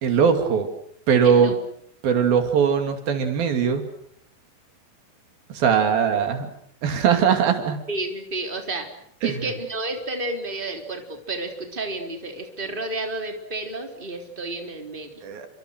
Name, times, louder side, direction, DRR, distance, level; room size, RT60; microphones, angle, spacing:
voice 1, 0.0-0.7 1.1-1.5 2.0-3.9 5.5-6.5 6.8-7.8 9.2-9.5 15.2-15.5, right 7 dB, 80° right, 6 dB, 4.5 m, -20 dB
voice 2, 1.2-1.5 7.9-8.9 9.2-15.1, right 2 dB, 15° right, 4 dB, 3.7 m, -31 dB
29.5 x 26.0 x 6.5 m, 0.66 s
omnidirectional pair, 4.1 m